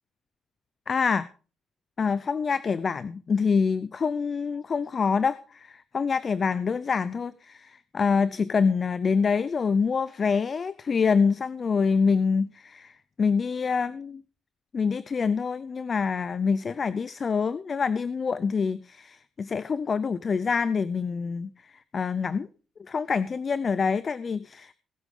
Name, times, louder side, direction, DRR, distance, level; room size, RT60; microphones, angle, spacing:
voice 1, 0.9-1.3 2.0-14.2 14.7-22.5 22.8-24.7, left 5 dB, 40° left, 17 dB, 0.5 m, -26 dB
19.5 x 8.2 x 3.7 m, 0.37 s
cardioid pair, 90°, 0 cm